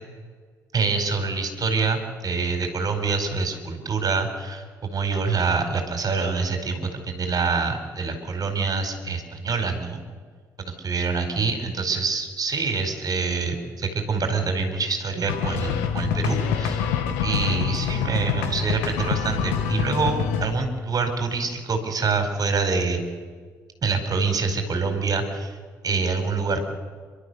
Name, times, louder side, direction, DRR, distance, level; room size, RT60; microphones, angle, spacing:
voice 1, 0.7-10.0 10.8-16.8 17.2-23.0 23.8-25.6 25.8-26.6, right 4 dB, 50° right, 6 dB, 4.8 m, -26 dB
sound 1, 15.3-20.5, left 7 dB, 85° left, 2.1 m, -26 dB
29.5 x 13.0 x 7.0 m, 1.5 s
hypercardioid pair, 45°, 8 cm